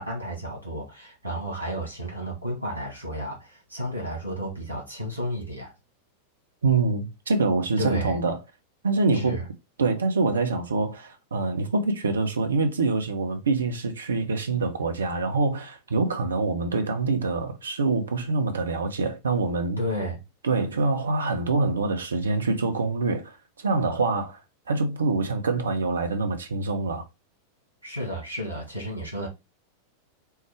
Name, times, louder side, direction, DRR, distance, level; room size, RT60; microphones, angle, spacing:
voice 1, 0.0-5.7 7.8-8.2 9.1-9.5 19.8-20.2 27.8-29.3, equal, 90° left, 1.9 m, -32 dB
voice 2, 6.6-8.4 8.8-9.4 9.8-19.8 20.4-24.4 24.7-27.0, right 3 dB, 70° right, 0.8 m, -25 dB
4.6 x 2.2 x 4.5 m
figure-of-eight pair, 90°, 0 cm